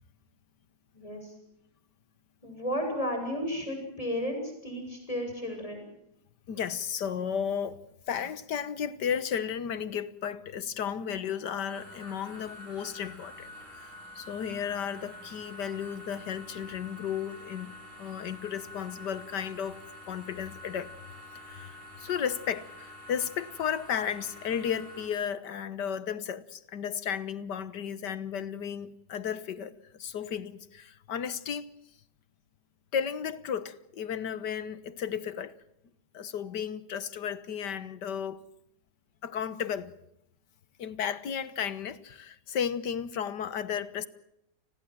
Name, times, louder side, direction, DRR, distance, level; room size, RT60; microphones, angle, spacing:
voice 1, 0.9-1.3 2.4-5.9, equal, 20° left, 7.9 m, -33 dB
voice 2, 6.5-7.8 8.1-19.8 20.1-20.9 21.4-31.7 32.9-35.6 36.1-38.4 39.2-39.9 40.8-44.1, left 8 dB, 90° left, 1.9 m, -34 dB
sound 1, 11.7-25.1, left 1 dB, 50° right, 6.7 m, -47 dB
30.0 x 21.0 x 7.7 m
omnidirectional pair, 1.8 m